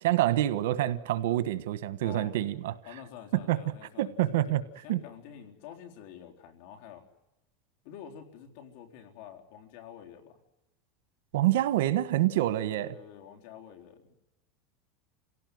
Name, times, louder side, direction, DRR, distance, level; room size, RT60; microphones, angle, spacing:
voice 1, 0.0-2.7 3.5-3.6 4.0-4.6 4.9-5.0 11.3-12.9, right 14 dB, 85° right, 1.3 m, -27 dB
voice 2, 2.0-2.4 2.8-7.0 7.8-10.4 12.8-14.1, left 9 dB, 65° left, 3.9 m, -48 dB
28.0 x 17.5 x 9.5 m
supercardioid pair, 140°, 0 cm